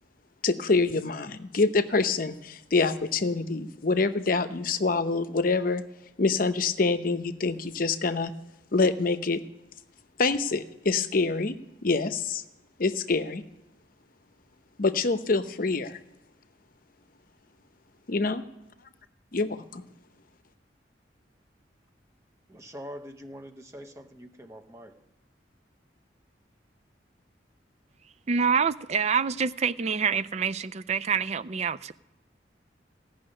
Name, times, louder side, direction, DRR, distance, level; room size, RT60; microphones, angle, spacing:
voice 1, 0.4-5.8 6.2-8.3 8.7-9.4 10.2-11.6 11.8-12.4 12.8-13.4 14.8-16.0 18.1-18.4 19.3-19.8, left 3 dB, 50° left, 11 dB, 0.8 m, -26 dB
voice 2, 22.5-24.9, equal, 15° right, 3 dB, 0.9 m, -44 dB
voice 3, 28.3-31.9, right 6 dB, 35° right, 14 dB, 0.4 m, -26 dB
16.0 x 6.4 x 9.7 m, 0.99 s
head